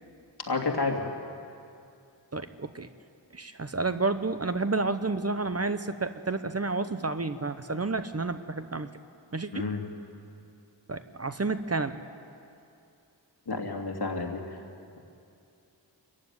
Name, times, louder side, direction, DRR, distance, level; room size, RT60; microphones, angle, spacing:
voice 1, 0.5-1.0 9.5-9.8 13.5-14.4, left 3 dB, 65° left, 1 dB, 2.8 m, -30 dB
voice 2, 2.3-2.9 3.3-8.9 9.3-9.7 10.9-12.0, right 3 dB, 35° right, 10 dB, 0.9 m, -30 dB
25.5 x 15.0 x 9.6 m, 2.6 s
wide cardioid pair, 75°, 42 cm